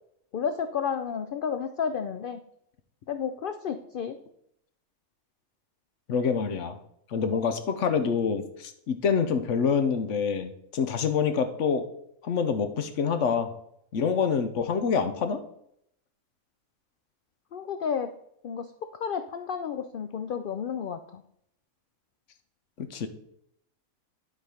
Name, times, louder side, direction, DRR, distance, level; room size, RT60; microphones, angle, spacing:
voice 1, 0.3-2.4 3.1-4.2 17.5-18.1 18.4-21.2, left 7 dB, 85° left, 8 dB, 0.4 m, -31 dB
voice 2, 6.1-6.8 7.1-11.8 12.2-13.5 13.9-15.4 22.8-23.1, left 6 dB, 65° left, 9 dB, 1.0 m, -26 dB
11.0 x 3.9 x 5.0 m, 0.73 s
omnidirectional pair, 1.5 m